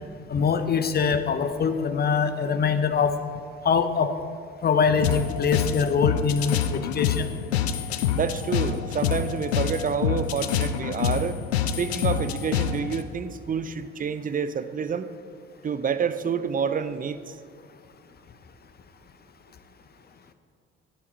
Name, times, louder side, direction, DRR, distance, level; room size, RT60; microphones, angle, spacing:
voice 1, 0.3-3.1 3.6-4.1 4.6-7.3, left 6 dB, 30° left, 10 dB, 0.8 m, -23 dB
sound 1, 5.0-13.0, left 8 dB, 75° left, 0.5 m, -27 dB
voice 2, 8.1-11.4 11.8-15.1 15.6-17.4, right 6 dB, 25° right, 13 dB, 0.6 m, -28 dB
14.0 x 8.5 x 4.2 m, 2.2 s
figure-of-eight pair, 45°, 32 cm